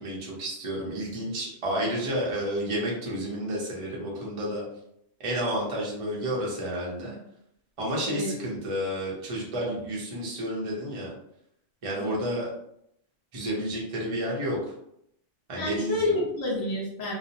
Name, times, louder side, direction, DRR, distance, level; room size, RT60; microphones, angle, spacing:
voice 1, 0.0-4.6 5.2-7.2 7.8-11.1 11.8-12.5 13.3-14.7 15.5-16.2, equal, 35° right, -4 dB, 0.6 m, -31 dB
voice 2, 11.9-12.4 15.6-17.1, left 2 dB, 20° left, -6 dB, 0.7 m, -29 dB
2.4 x 2.0 x 2.8 m, 0.75 s
omnidirectional pair, 1.2 m